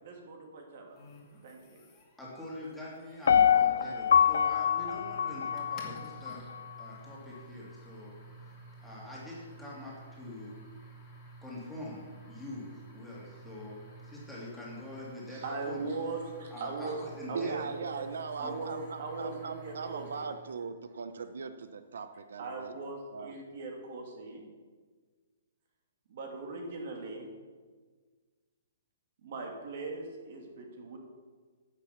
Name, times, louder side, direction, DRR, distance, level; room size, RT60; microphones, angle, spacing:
voice 1, 0.0-1.0 1.4-1.8 15.3-17.0 17.3-18.1 18.4-20.3 22.4-24.5 26.1-27.3 29.2-31.0, right 3 dB, 50° right, 2 dB, 2.6 m, -40 dB
sound 1, 0.9-20.5, right 2 dB, 15° left, 2.1 m, -52 dB
voice 2, 2.2-6.5 6.8-8.2 8.4-8.5 8.8-10.5 11.4-15.8 16.5-17.7 18.4-18.5, left 1 dB, ahead, -7 dB, 2.8 m, -44 dB
Piano, 3.3-6.3 6.8-6.9, left 8 dB, 75° left, 0.4 m, -25 dB
voice 3, 17.3-22.8 23.1-23.3, right 5 dB, 80° right, 10 dB, 0.7 m, -39 dB
10.0 x 8.3 x 7.1 m, 1.5 s
hypercardioid pair, 165°, 0 cm